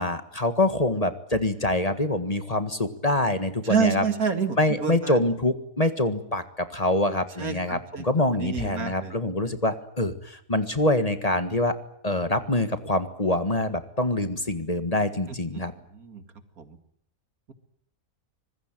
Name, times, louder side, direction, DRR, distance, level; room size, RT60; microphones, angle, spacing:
voice 1, 0.0-4.1 4.6-11.7 12.0-15.7, left 1 dB, 25° left, 10 dB, 1.7 m, -25 dB
voice 2, 3.7-5.1 7.4-8.0 8.4-9.1 15.6-15.7 16.0-16.2 16.6-16.7, right 6 dB, 80° right, 9 dB, 2.7 m, -27 dB
25.5 x 20.5 x 9.0 m, 0.68 s
omnidirectional pair, 1.5 m